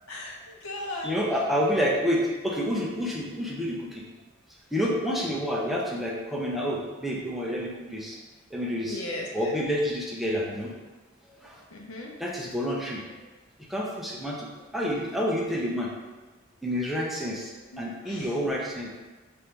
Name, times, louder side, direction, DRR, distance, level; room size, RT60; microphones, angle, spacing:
voice 1, 0.1-1.1 5.2-5.3 8.9-9.6 11.7-12.1 17.7-18.3, left 1 dB, 90° left, 0 dB, 0.7 m, -37 dB
voice 2, 1.0-4.0 4.7-8.2 8.5-9.0 9.3-10.7 12.2-13.0 13.7-14.5 14.7-15.9 16.6-17.5 17.8-18.9, equal, ahead, -4 dB, 0.5 m, -28 dB
3.3 x 2.6 x 4.4 m, 1.2 s
head